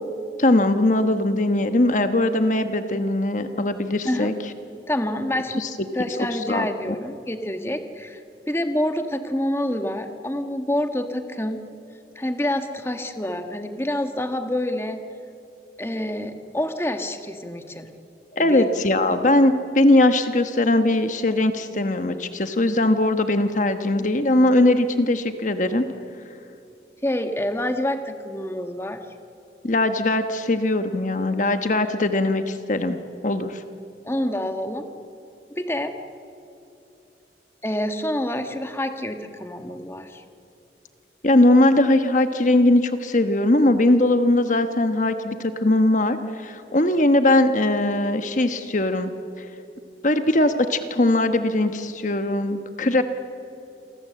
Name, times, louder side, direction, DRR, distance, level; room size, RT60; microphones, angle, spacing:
voice 1, 0.4-4.3 5.6-5.7 6.3-6.9 18.3-25.8 29.6-33.0 33.2-33.6 41.2-49.1 49.4-49.5 50.0-53.0, left 1 dB, 45° left, 8 dB, 1.2 m, -20 dB
voice 2, 4.9-5.5 5.9-8.2 8.5-11.6 12.1-15.0 15.8-17.9 18.4-18.6 27.0-29.0 34.0-34.8 35.5-35.9 37.6-40.2, left 1 dB, 15° left, 6 dB, 1.3 m, -27 dB
29.0 x 24.0 x 7.7 m, 2.8 s
head